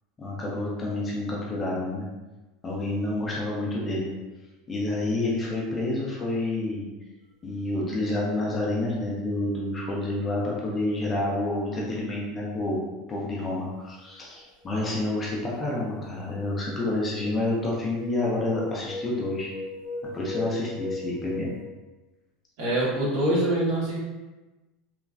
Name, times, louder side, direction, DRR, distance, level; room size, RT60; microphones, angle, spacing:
voice 1, 0.2-2.0 2.6-4.1 4.7-6.9 7.4-12.8 13.1-19.5 20.1-21.5, left 2 dB, 15° left, -4 dB, 0.4 m, -29 dB
sound 1, 14.6-14.9 15.4-21.6, left 2 dB, 50° right, 0.7 m, -38 dB
voice 2, 22.6-24.0, right 1 dB, 65° right, -7 dB, 1.2 m, -24 dB
3.0 x 2.4 x 2.4 m, 1.2 s
supercardioid pair, 175°, 0 cm